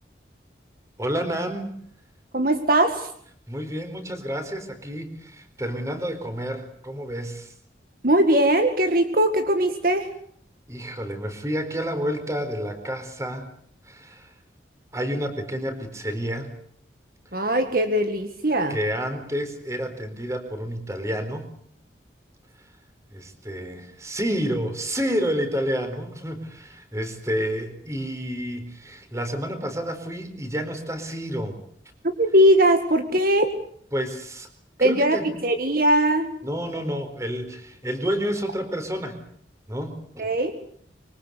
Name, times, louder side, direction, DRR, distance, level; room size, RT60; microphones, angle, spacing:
voice 1, 1.0-1.7 3.5-7.5 10.7-13.4 13.8-14.3 14.9-16.5 17.3-17.5 18.7-21.5 23.1-31.6 33.9-34.5 34.8-35.3 36.4-39.2 39.7-40.3, equal, 15° right, 8 dB, 4.3 m, -29 dB
voice 2, 2.3-3.1 8.0-10.1 17.3-18.8 32.0-33.5 34.8-36.3 40.2-40.5, right 1 dB, 50° right, 8 dB, 1.9 m, -20 dB
25.5 x 24.0 x 8.3 m, 0.65 s
head